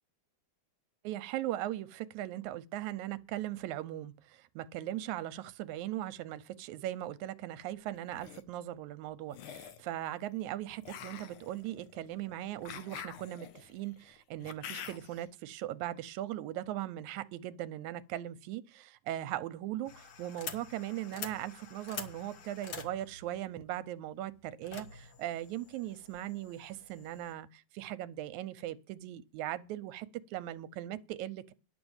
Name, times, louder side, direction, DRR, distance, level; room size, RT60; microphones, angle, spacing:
voice 1, 1.0-31.5, right 13 dB, 80° right, 2.0 m, -39 dB
sound 1, 7.9-8.4 9.3-9.9 10.8-15.2, left 9 dB, 80° left, 1.2 m, -47 dB
sound 2, 19.8-27.3, left 6 dB, 60° left, 2.0 m, -47 dB
11.0 x 6.1 x 8.0 m
omnidirectional pair, 3.4 m